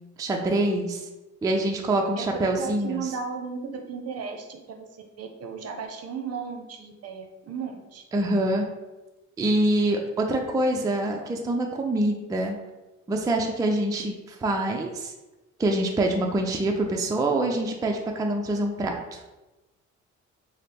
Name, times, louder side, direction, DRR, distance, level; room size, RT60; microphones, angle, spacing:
voice 1, 0.2-1.1 1.4-3.1 8.1-8.7 9.4-12.6 13.1-15.1 15.6-19.2, right 1 dB, 10° right, 2 dB, 0.3 m, -25 dB
voice 2, 2.2-8.0, right 6 dB, 55° right, 4 dB, 0.6 m, -35 dB
3.3 x 2.0 x 4.1 m, 1.1 s
cardioid pair, 90°, 30 cm